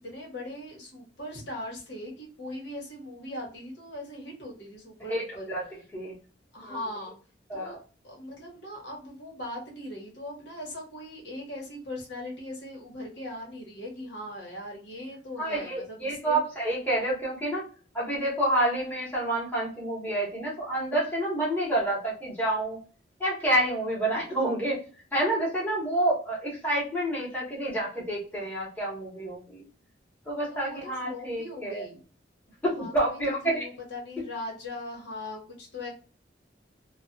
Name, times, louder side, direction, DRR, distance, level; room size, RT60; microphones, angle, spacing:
voice 1, 0.0-5.5 6.5-7.2 7.5-7.8 8.0-16.4 30.5-32.0 32.8-35.9, left 1 dB, 70° left, -2 dB, 1.4 m, -40 dB
voice 2, 5.1-5.7 5.9-6.1 6.6-6.8 7.5-7.8 15.4-17.6 17.9-22.8 23.2-24.8 25.1-29.6 30.3-31.8 32.6-33.7, right 1 dB, 10° left, -6 dB, 1.3 m, -28 dB
3.2 x 2.4 x 2.7 m, 0.37 s
head